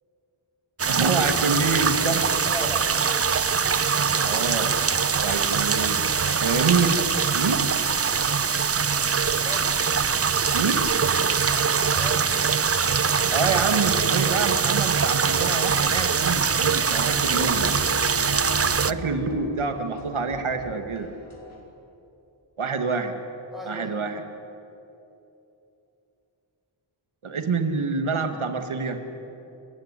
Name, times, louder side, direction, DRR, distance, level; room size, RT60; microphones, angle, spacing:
sound 1, 0.8-18.9, right 6 dB, 30° right, 0.6 m, -23 dB
voice 1, 0.9-2.4 4.1-4.8 5.2-6.1 6.3-7.6 10.5-10.9 13.3-17.7 18.9-21.1 22.6-23.2 23.7-24.2 27.2-29.0, right 4 dB, 80° right, 6 dB, 2.4 m, -26 dB
voice 2, 2.5-3.3 9.1-9.7 11.6-12.3 17.1-17.6 23.5-24.0, equal, ahead, -1 dB, 5.9 m, -37 dB
sound 2, 16.3-21.6, left 3 dB, 70° left, 5.0 m, -45 dB
sound 3, 17.1-20.0, left 2 dB, 35° left, 5.5 m, -37 dB
29.5 x 17.5 x 9.9 m, 2.9 s
wide cardioid pair, 90°, 49 cm